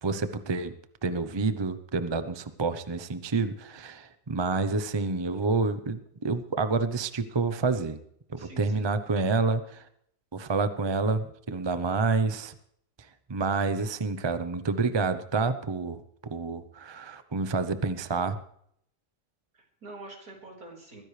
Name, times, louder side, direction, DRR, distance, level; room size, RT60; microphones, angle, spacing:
voice 1, 0.0-0.7 1.0-8.0 8.3-9.8 10.3-12.5 13.3-18.4, right 4 dB, 30° right, 11 dB, 0.5 m, -28 dB
voice 2, 8.4-9.0 19.5-21.0, right 2 dB, 60° right, 0 dB, 5.2 m, -46 dB
21.5 x 15.5 x 3.3 m, 0.70 s
omnidirectional pair, 1.7 m